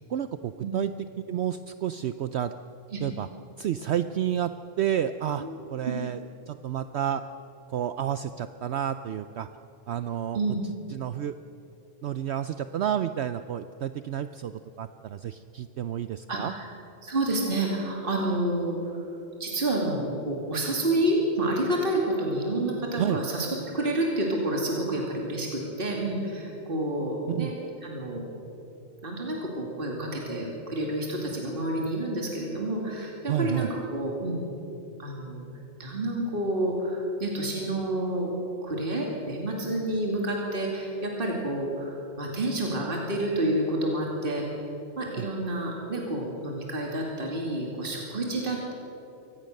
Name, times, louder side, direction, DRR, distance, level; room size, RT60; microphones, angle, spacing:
voice 1, 0.1-0.9 1.3-2.5 3.0-3.3 3.6-4.5 4.8-6.2 6.5-7.2 7.7-9.5 9.9-10.4 10.9-11.4 12.0-16.5 23.0-23.2 27.3-27.5 33.3-33.7 45.2-45.3, right 10 dB, 65° right, 11 dB, 0.8 m, -30 dB
voice 2, 16.3-16.7 17.0-19.0 19.4-23.5 23.7-27.5 27.8-28.3 29.0-34.4 35.0-35.5 35.8-38.3 38.6-44.5 45.0-48.7, right 1 dB, 45° right, -1 dB, 2.7 m, -29 dB
24.0 x 18.0 x 6.5 m, 3.0 s
omnidirectional pair, 1.3 m